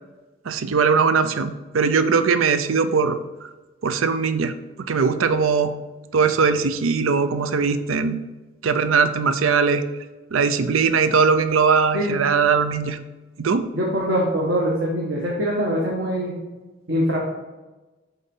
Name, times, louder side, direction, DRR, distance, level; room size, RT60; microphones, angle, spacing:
voice 1, 0.5-3.5 3.8-4.5 4.9-5.7 6.1-8.2 8.6-9.8 10.3-13.0 13.4-13.7, right 5 dB, 85° right, 11 dB, 0.5 m, -20 dB
voice 2, 13.7-16.4 16.9-17.2, equal, 60° right, -3 dB, 1.3 m, -23 dB
8.1 x 3.9 x 5.4 m, 1.2 s
head